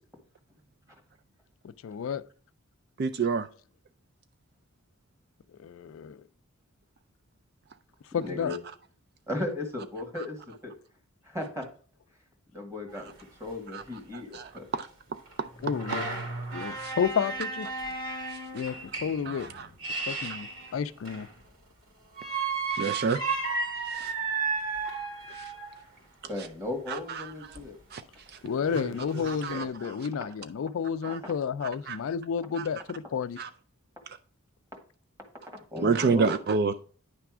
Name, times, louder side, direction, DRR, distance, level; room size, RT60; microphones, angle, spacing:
voice 1, 1.8-2.2 5.6-6.2 8.1-8.5 15.6-16.1 16.5-17.7 18.5-19.5 20.1-21.3 28.4-33.4, left 7 dB, 65° left, 0.3 m, -31 dB
voice 2, 3.0-3.5 13.7-13.8 14.3-14.8 15.9-16.0 16.8-16.9 19.3-19.7 22.7-23.2 23.9-24.1 25.3-25.4 27.9-28.0 29.3-30.0 31.0-31.2 31.9-32.0 32.6-32.7 33.4-33.5 35.8-36.7, right 5 dB, 45° right, 0.4 m, -28 dB
voice 3, 8.2-8.6 9.3-10.7 11.2-11.7 12.5-13.1 13.4-14.7 26.2-27.8 31.0-31.1 35.7-36.4, left 2 dB, 15° right, 1.8 m, -36 dB
sound 1, 12.9-13.0 13.2-13.3 13.9-14.0 15.3-21.4 22.1-25.8 27.6-27.7 28.1-28.2 28.6-29.7, right 4 dB, 70° right, 2.7 m, -34 dB
9.7 x 3.4 x 6.0 m
head